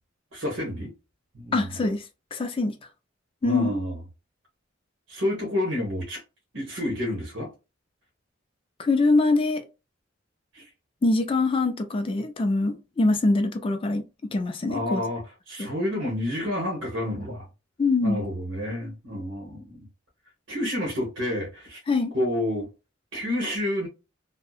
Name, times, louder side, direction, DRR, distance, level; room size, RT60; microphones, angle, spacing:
voice 1, 0.3-0.9 1.3-1.8 3.4-4.0 5.1-6.2 6.5-7.5 10.5-10.7 14.7-17.5 18.0-19.9 20.5-21.8 22.1-22.7 23.1-23.9, left 1 dB, 80° right, 1.1 m, -29 dB
voice 2, 1.5-2.0 2.3-2.8 3.4-3.7 8.8-9.6 11.0-15.0 15.6-15.7 17.8-18.2 21.9-22.1, left 3 dB, 30° left, 0.3 m, -23 dB
2.7 x 2.1 x 2.3 m
head